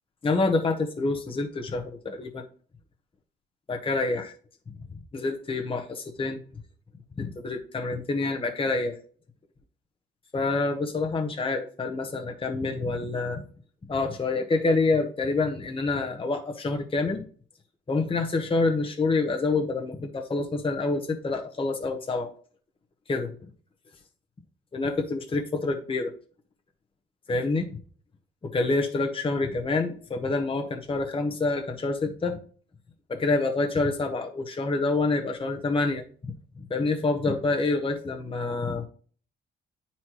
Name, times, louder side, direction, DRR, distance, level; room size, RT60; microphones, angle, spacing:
voice 1, 0.2-2.4 3.7-4.3 5.1-6.4 7.2-9.0 10.3-13.4 13.9-17.2 17.9-22.3 23.1-23.3 24.7-26.1 27.3-27.7 28.4-32.4 33.1-36.0 36.6-38.8, left 3 dB, 25° left, 3 dB, 1.1 m, -27 dB
9.4 x 4.2 x 3.0 m, 0.42 s
cardioid pair, 90°, 20 cm